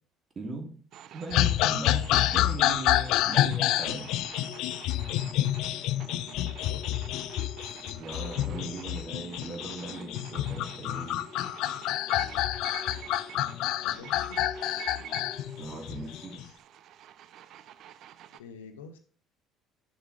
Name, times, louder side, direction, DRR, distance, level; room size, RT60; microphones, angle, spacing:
voice 1, 0.4-0.8 1.1-4.1 8.0-11.3 15.6-16.4, right 2 dB, 35° right, 1 dB, 2.5 m, -39 dB
sound 1, 0.9-18.4, right 11 dB, 60° right, 0.4 m, -48 dB
sound 2, 1.3-16.4, left 14 dB, 65° left, 0.3 m, -28 dB
sound 3, 4.4-16.3, left 5 dB, 35° left, 1.2 m, -49 dB
voice 2, 6.5-7.0 13.8-14.4 18.3-19.0, left 5 dB, 80° left, 7 dB, 0.9 m, -48 dB
7.4 x 6.7 x 3.2 m, 0.43 s
hypercardioid pair, 60°, 0 cm